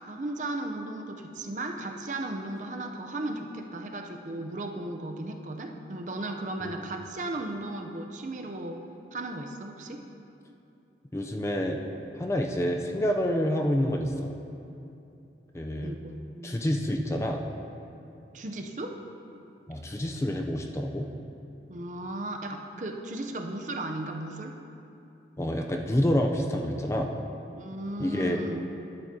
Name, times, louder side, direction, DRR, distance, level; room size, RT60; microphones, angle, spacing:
voice 1, 0.0-8.8 9.1-10.0 15.8-16.6 18.3-18.9 21.7-24.6 27.5-28.6, right 2 dB, 45° right, 4 dB, 0.5 m, -36 dB
voice 2, 11.1-11.8 12.2-14.3 15.5-15.9 16.4-17.4 19.7-21.1 25.4-27.1 28.0-28.4, equal, 15° left, 2 dB, 0.4 m, -28 dB
12.5 x 7.8 x 2.7 m, 2.8 s
head